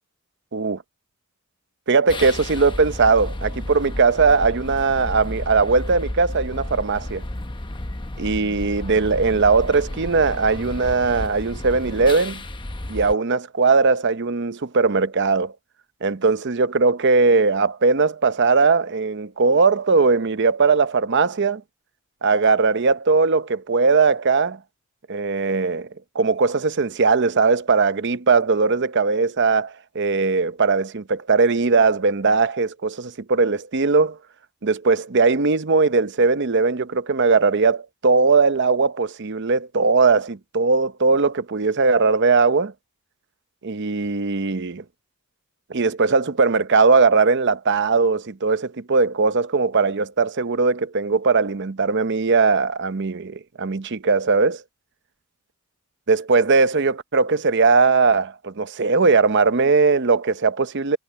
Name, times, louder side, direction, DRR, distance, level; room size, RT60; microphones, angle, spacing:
voice 1, 1.9-7.2 8.2-12.4 12.9-15.5 16.0-21.6 22.2-24.6 25.1-25.9 26.1-34.2 34.6-42.7 43.6-44.8 45.7-54.6 56.1-61.0, right 4 dB, 55° right, 0.7 m, -19 dB
sound 1, 2.1-13.1, left 1 dB, 20° left, 0.9 m, -32 dB
head